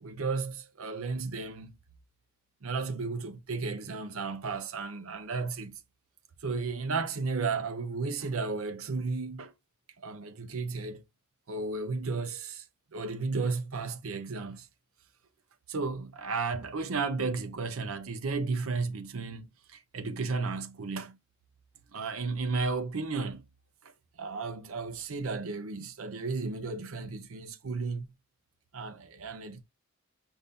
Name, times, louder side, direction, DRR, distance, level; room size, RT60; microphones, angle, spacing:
voice 1, 0.0-1.8 2.6-5.7 6.4-9.5 10.0-11.0 11.5-12.6 12.9-14.7 15.7-21.2 21.9-23.4 23.8-23.9 24.2-28.1 28.7-29.6, right 4 dB, 70° right, 0.6 m, -33 dB
5.4 x 2.7 x 3.5 m
head